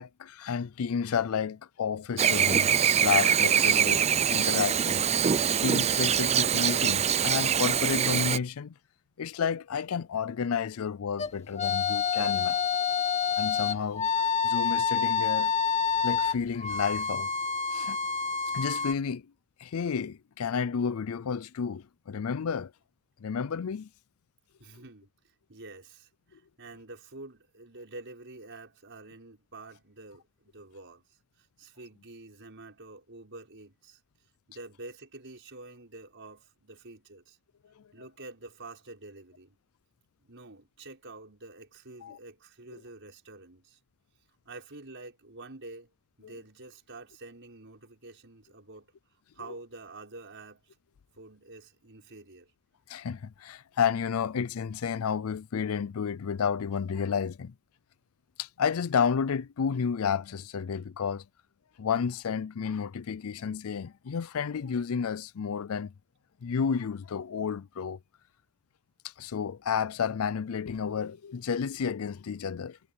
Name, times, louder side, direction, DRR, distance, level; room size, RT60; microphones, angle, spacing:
voice 1, 0.0-8.7 9.2-12.6 13.4-14.1 14.4-15.5 16.0-17.3 17.7-18.0 18.5-19.2 19.6-22.7 23.2-23.9 42.0-42.2 46.2-46.3 52.9-57.5 58.4-61.2 61.8-65.9 66.4-68.0 69.0-72.8, left 6 dB, 80° left, 0.5 m, -31 dB
Chirp tweet / Buzz, 2.2-8.4, right 8 dB, 30° right, 0.4 m, -24 dB
sound 1, 11.2-18.9, left 6 dB, 30° left, 1.3 m, -28 dB
voice 2, 24.6-34.0 34.5-37.4 37.9-39.6 40.2-43.8 44.4-45.9 46.2-48.9 49.3-50.8 51.1-52.5, right 2 dB, 60° right, 5.9 m, -48 dB
head